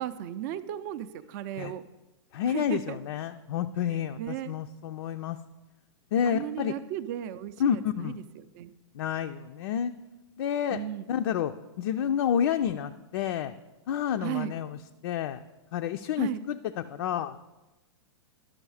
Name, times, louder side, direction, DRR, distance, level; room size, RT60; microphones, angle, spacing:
voice 1, 0.0-1.8 2.5-3.0 3.9-4.5 6.3-8.7 10.7-11.1 14.2-14.5 16.2-16.4, right 11 dB, 40° right, 10 dB, 0.4 m, -35 dB
voice 2, 2.3-5.4 6.1-6.7 7.6-8.2 8.9-9.9 10.4-10.8 11.1-13.5 13.9-15.4 15.7-17.4, left 9 dB, 60° left, 6 dB, 0.4 m, -29 dB
11.0 x 6.3 x 4.8 m, 1.1 s
hypercardioid pair, 150°, 15 cm